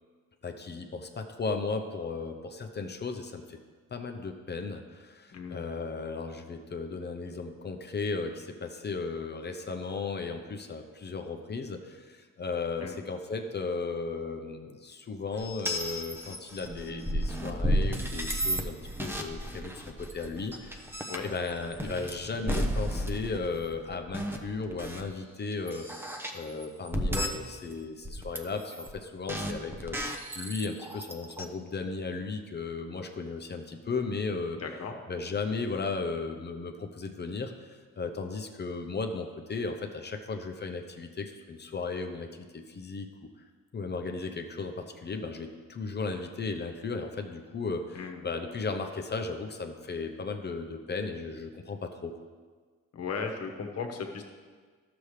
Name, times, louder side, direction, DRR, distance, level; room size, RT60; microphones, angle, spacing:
voice 1, 0.4-3.6 3.9-20.9 21.2-30.0 30.3-34.6 35.1-43.1 43.7-52.2, left 4 dB, 35° left, 5 dB, 0.8 m, -35 dB
voice 2, 5.3-5.7 12.8-13.0 21.1-21.2 34.6-35.0 47.9-48.3 52.9-54.2, left 5 dB, 55° left, 3 dB, 1.2 m, -36 dB
sound 1, 15.3-25.0 25.5-27.7 28.0-28.9 29.3-31.4, equal, 5° right, 0.9 m, -33 dB
12.0 x 7.0 x 3.3 m, 1.5 s
cardioid pair, 90°, 30 cm